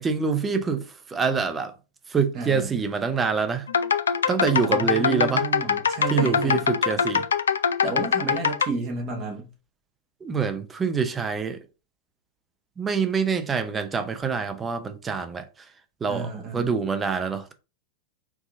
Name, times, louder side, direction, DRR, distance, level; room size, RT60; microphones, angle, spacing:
voice 1, 0.0-1.7 2.1-3.7 4.3-5.5 6.1-7.3 10.2-11.6 12.8-15.5 16.0-17.5, right 5 dB, 20° right, 0.6 m, -25 dB
voice 2, 2.3-2.8 4.5-6.6 7.8-9.5 16.1-16.8, right 4 dB, 35° right, 1.1 m, -32 dB
sound 1, 3.7-8.7, left 7 dB, 70° left, 0.3 m, -23 dB
4.6 x 2.8 x 2.7 m
figure-of-eight pair, 90°, 0 cm